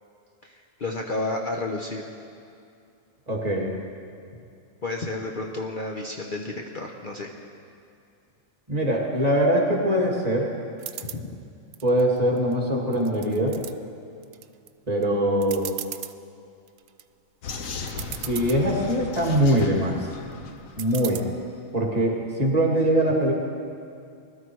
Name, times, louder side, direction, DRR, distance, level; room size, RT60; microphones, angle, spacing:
voice 1, 0.4-2.1 4.8-7.3 11.1-11.4, left 2 dB, 40° left, 0 dB, 1.0 m, -31 dB
voice 2, 3.3-3.7 8.7-10.5 11.8-13.6 14.9-15.7 18.2-20.1 20.8-21.3 21.7-23.3, right 1 dB, 30° right, -2 dB, 2.4 m, -22 dB
sound 1, 10.8-11.2 11.7-12.5 12.9-13.7 14.2-14.7 15.0-15.1 15.4-16.1 16.7-17.0 17.6-17.7 17.9-18.6 19.1-19.6 20.8-21.2, right 11 dB, 90° right, 1.0 m, -37 dB
Vehicle, 17.4-21.4, left 5 dB, 85° left, 1.4 m, -37 dB
20.5 x 12.5 x 4.7 m, 2.5 s
omnidirectional pair, 1.4 m